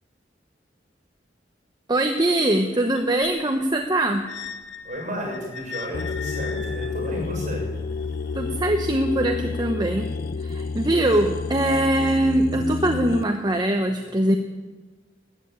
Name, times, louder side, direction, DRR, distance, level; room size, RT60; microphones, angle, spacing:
voice 1, 1.9-4.2 8.3-10.1 10.4-14.4, right 1 dB, 25° right, 4 dB, 1.0 m, -22 dB
sound 1, 2.9-9.0 9.8-9.9, left 6 dB, 80° left, 1.4 m, -40 dB
voice 2, 4.8-7.7, equal, 45° right, 0 dB, 6.9 m, -33 dB
sound 2, 5.9-13.2, left 4 dB, 55° left, 0.4 m, -30 dB
13.0 x 11.0 x 8.6 m, 1.3 s
head